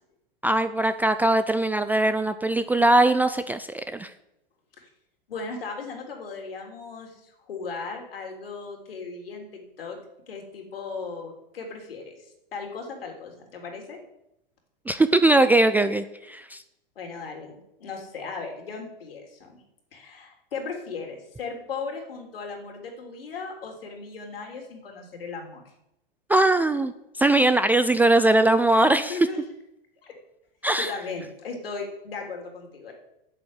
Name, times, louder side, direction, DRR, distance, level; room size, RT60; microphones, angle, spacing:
voice 1, 0.4-4.1 14.9-16.6 26.3-26.9 27.2-29.2 30.6-30.9, right 2 dB, 5° right, 10 dB, 0.3 m, -21 dB
voice 2, 5.3-7.1 7.5-10.0 10.3-12.2 12.5-14.0 16.9-19.5 19.9-25.6 28.8-29.4 30.0-30.1 30.8-32.9, left 4 dB, 75° left, 2 dB, 3.4 m, -37 dB
8.6 x 7.7 x 8.2 m, 0.85 s
hypercardioid pair, 105°, 29 cm